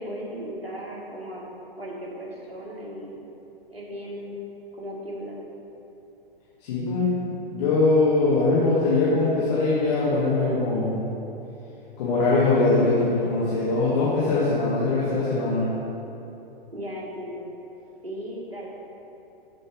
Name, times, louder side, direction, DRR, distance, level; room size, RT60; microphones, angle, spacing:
voice 1, 0.0-1.4 1.7-3.2 3.7-4.4 4.7-5.4 16.7-17.5 18.0-18.7, equal, 85° right, -4 dB, 1.8 m, -36 dB
voice 2, 6.6-7.1 7.5-11.0 12.0-15.7, left 3 dB, 45° left, -8 dB, 1.5 m, -22 dB
6.3 x 6.0 x 5.1 m, 2.9 s
figure-of-eight pair, 110°, 30 cm